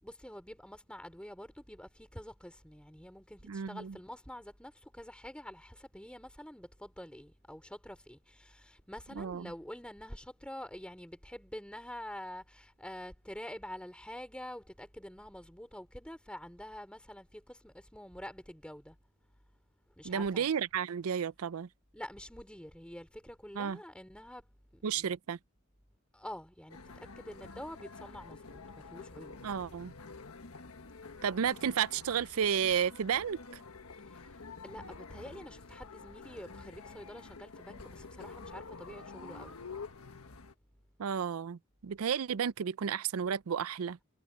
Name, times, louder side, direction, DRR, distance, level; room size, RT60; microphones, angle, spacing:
voice 1, 0.0-19.0 20.0-20.5 21.9-24.4 24.7-25.1 26.1-29.4 34.0-39.6, left 1 dB, 5° left, 3.1 m, -47 dB
voice 2, 3.5-4.0 9.2-9.5 20.0-21.7 23.5-23.8 24.8-25.4 29.4-29.9 31.2-33.4 41.0-44.0, right 7 dB, 85° right, 0.5 m, -32 dB
sound 1, 26.7-40.5, left 4 dB, 90° left, 1.4 m, -49 dB
head